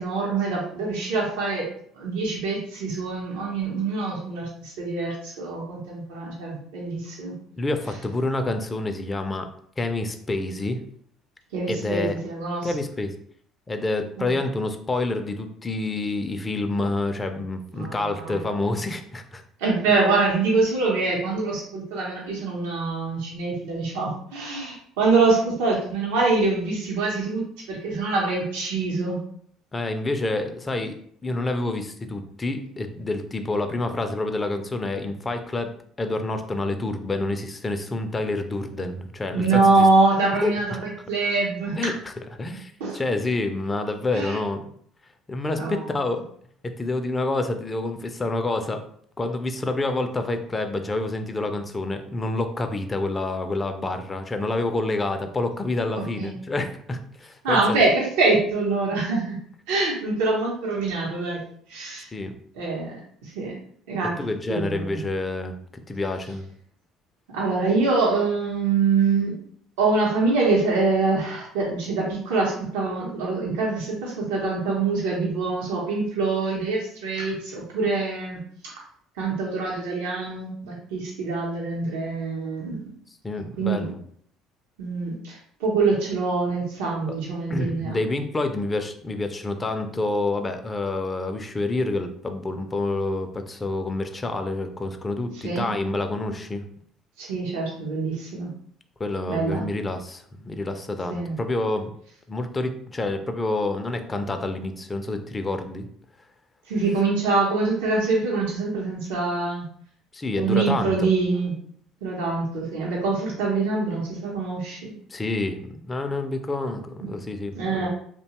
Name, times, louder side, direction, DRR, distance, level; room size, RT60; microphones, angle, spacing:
voice 1, 0.0-1.7 1.9-7.3 11.5-12.7 14.2-14.3 17.7-18.4 19.6-27.4 27.7-29.2 39.3-41.9 42.8-43.0 44.1-44.4 45.6-45.9 55.9-56.3 57.4-59.4 59.7-61.4 61.7-62.1 62.5-62.9 63.2-63.5 63.9-64.1 64.5-65.0 67.3-69.3 69.8-78.7 79.2-82.8 83.6-83.9 84.8-88.0 95.4-95.7 97.2-98.5 99.3-99.7 101.1-101.4 106.7-109.6 110.4-111.5 112.0-114.9 117.5-117.9, right 3 dB, 90° right, -3 dB, 0.7 m, -24 dB
voice 2, 7.6-9.5 9.8-10.8 11.7-12.2 12.6-13.1 13.7-19.4 29.7-30.9 31.2-35.7 36.0-39.9 40.3-40.8 41.7-41.9 42.4-44.7 45.3-46.2 46.6-48.8 49.2-57.8 62.1-62.3 64.2-66.5 83.2-84.0 87.5-96.7 99.0-101.9 102.3-105.9 110.1-111.1 115.1-117.9, left 2 dB, 25° left, 7 dB, 0.4 m, -28 dB
2.7 x 2.2 x 2.9 m, 0.63 s
supercardioid pair, 85°, 0 cm